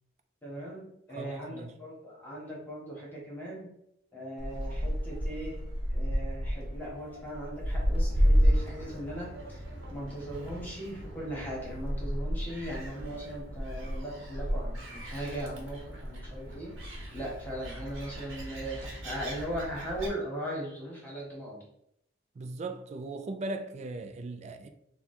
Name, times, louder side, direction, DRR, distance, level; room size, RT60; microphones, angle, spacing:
voice 1, 0.4-3.7 4.1-5.6 5.9-9.6 9.9-16.7 17.1-21.6, right 1 dB, 10° left, 1.1 m, -39 dB
voice 2, 1.1-1.7 22.4-24.7, right 2 dB, 35° right, 0.3 m, -38 dB
Gull seagull, 4.4-20.1, equal, 85° right, 0.9 m, -32 dB
2.9 x 2.3 x 4.1 m
head